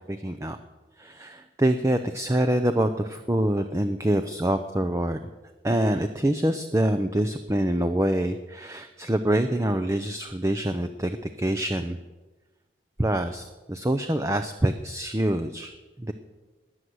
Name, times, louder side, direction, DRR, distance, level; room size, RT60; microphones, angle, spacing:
voice 1, 0.1-0.6 1.0-5.2 5.6-12.0 13.0-16.1, right 1 dB, 15° right, 8 dB, 0.6 m, -25 dB
21.0 x 8.1 x 7.8 m, 1.2 s
head